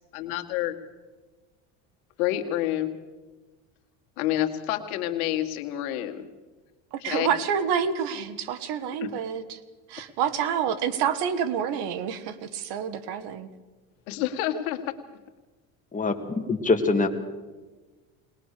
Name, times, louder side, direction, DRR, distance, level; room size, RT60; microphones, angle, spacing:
voice 1, 0.1-0.7 2.2-2.9 4.2-6.3 7.0-7.3 9.0-9.1 14.1-14.8, left 13 dB, 85° left, 6 dB, 2.0 m, -28 dB
voice 2, 6.9-9.6 9.9-13.5, right 8 dB, 65° right, 14 dB, 1.7 m, -28 dB
voice 3, 15.9-17.1, left 3 dB, 20° left, 4 dB, 2.2 m, -24 dB
20.5 x 20.5 x 6.8 m, 1.3 s
supercardioid pair, 115°, 42 cm